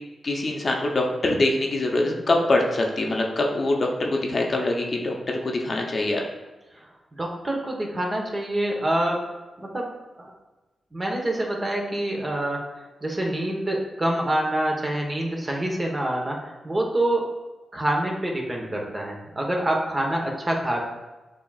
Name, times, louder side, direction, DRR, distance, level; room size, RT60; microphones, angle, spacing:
voice 1, 0.2-6.2, left 2 dB, 55° left, 0 dB, 0.7 m, -24 dB
voice 2, 7.1-9.2 9.6-9.9 10.2-10.3 10.9-17.3 17.7-20.8, right 1 dB, 30° right, 0 dB, 1.1 m, -26 dB
6.9 x 2.8 x 2.4 m, 1.1 s
supercardioid pair, 40°, 0 cm